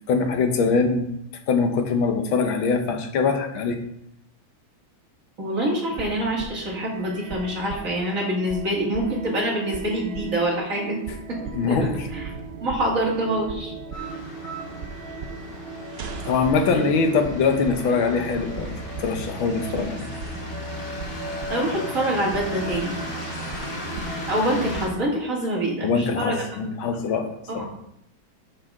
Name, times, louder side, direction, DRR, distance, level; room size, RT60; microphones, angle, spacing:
voice 1, 0.1-1.1 1.5-3.8 11.5-12.1 16.3-18.7 19.0-20.1 25.8-27.3 27.6-27.7, left 4 dB, 80° left, 6 dB, 1.8 m, -23 dB
voice 2, 5.4-11.0 11.3-11.4 11.7-12.3 12.6-13.7 16.6-16.8 21.5-22.9 24.3-26.4 26.9-27.0 27.5-27.8, right 1 dB, 40° right, -3 dB, 2.6 m, -26 dB
sound 1, 5.9-25.1, right 4 dB, 85° right, 0.5 m, -37 dB
sound 2, 13.9-24.9, left 1 dB, 60° left, 2.7 m, -36 dB
12.0 x 5.5 x 3.7 m, 0.76 s
omnidirectional pair, 2.2 m